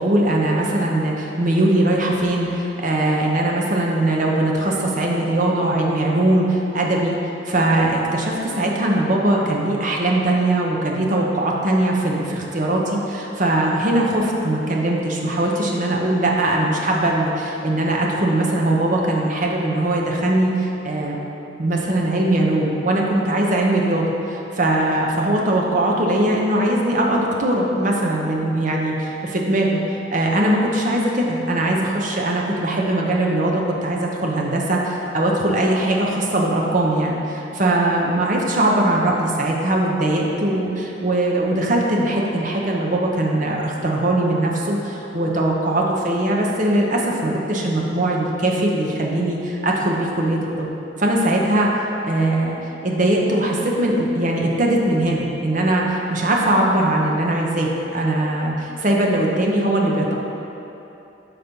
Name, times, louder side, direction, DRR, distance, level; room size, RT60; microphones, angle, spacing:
voice 1, 0.0-7.2 7.5-21.2 21.6-50.7 51.0-51.7 52.0-52.6 52.8-60.1, right 1 dB, 45° right, -1 dB, 0.7 m, -20 dB
5.9 x 4.1 x 5.2 m, 3.0 s
head